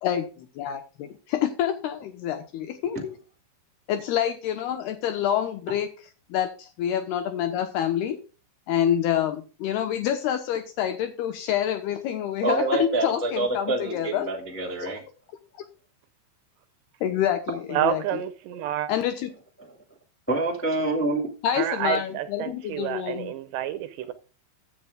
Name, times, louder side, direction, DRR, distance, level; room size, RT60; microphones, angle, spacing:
voice 1, 0.0-3.2 3.9-5.9 6.3-8.2 8.7-14.3 14.8-14.9 17.0-18.0 18.9-19.3 21.4-23.3, left 10 dB, 75° left, 8 dB, 2.6 m, -27 dB
voice 2, 12.4-15.0 17.5-17.6 19.6-19.7 20.3-21.3, right 2 dB, 10° left, 0 dB, 0.5 m, -27 dB
voice 3, 17.7-18.9 21.6-24.1, right 12 dB, 75° right, 11 dB, 2.7 m, -29 dB
15.5 x 10.0 x 2.4 m, 0.34 s
omnidirectional pair, 5.6 m